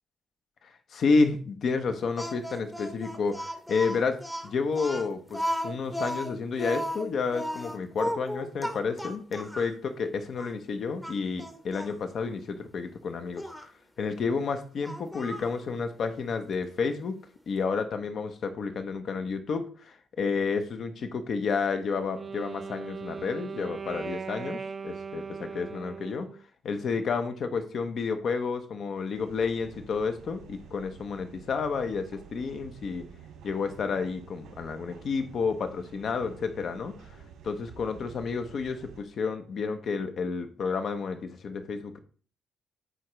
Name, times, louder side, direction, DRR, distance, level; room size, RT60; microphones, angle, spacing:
voice 1, 0.6-13.7 14.0-17.2 17.5-26.3 26.6-33.1 33.4-37.2 37.4-42.0, left 4 dB, 60° left, 8 dB, 0.9 m, -30 dB
Speech, 2.2-9.7 10.4-10.5 11.0-12.0 13.4-13.7 14.8-15.6, equal, 5° left, 0.8 m, -35 dB
Wind instrument woodwind instrument, 21.9-26.4, right 5 dB, 35° right, 0.3 m, -39 dB
sound 1, 29.1-39.0, right 7 dB, 85° right, 1.9 m, -50 dB
9.1 x 3.8 x 3.2 m, 0.41 s
cardioid pair, 90°, 0 cm